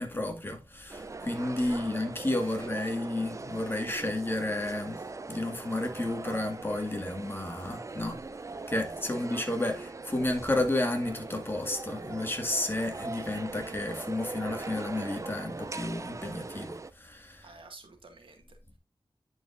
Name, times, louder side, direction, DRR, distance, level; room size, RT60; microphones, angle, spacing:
voice 1, 0.0-5.0 5.3-8.2 8.7-17.6, left 1 dB, 25° left, 1.9 m, -32 dB
sound 1, 0.9-16.9, right 3 dB, 35° right, 0.4 m, -41 dB
voice 2, 1.6-2.0 2.4-3.0 9.1-9.2 17.4-18.8, right 3 dB, 85° right, 1.8 m, -52 dB
10.5 x 4.8 x 2.5 m
wide cardioid pair, 65°, 9 cm